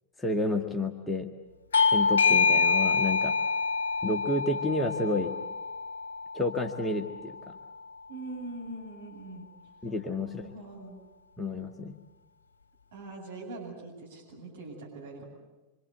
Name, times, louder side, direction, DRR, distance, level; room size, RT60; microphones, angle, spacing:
voice 1, 0.2-1.3 1.9-3.3 4.0-5.3 6.3-7.6 9.8-10.5 11.4-11.9, left 2 dB, 10° left, 2 dB, 1.7 m, -30 dB
Bell / Doorbell, 1.7-6.9, left 4 dB, 65° left, 1.1 m, -26 dB
voice 2, 8.1-9.5 10.2-11.0 12.9-15.2, right 2 dB, 60° right, -3 dB, 7.9 m, -42 dB
26.5 x 25.5 x 8.0 m, 1.1 s
figure-of-eight pair, 90°, 0 cm